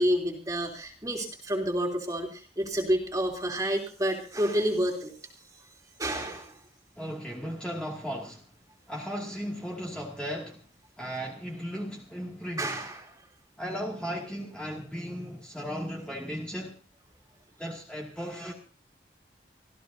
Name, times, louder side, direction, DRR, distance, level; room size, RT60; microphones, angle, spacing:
voice 1, 0.0-5.1 6.0-6.6 12.6-13.0, equal, 20° right, 3.2 m, -29 dB
voice 2, 7.0-8.5 8.9-10.7 11.0-12.8 13.6-16.8 17.6-18.5, equal, 5° left, 2.4 m, -36 dB
25.5 x 15.5 x 2.8 m
head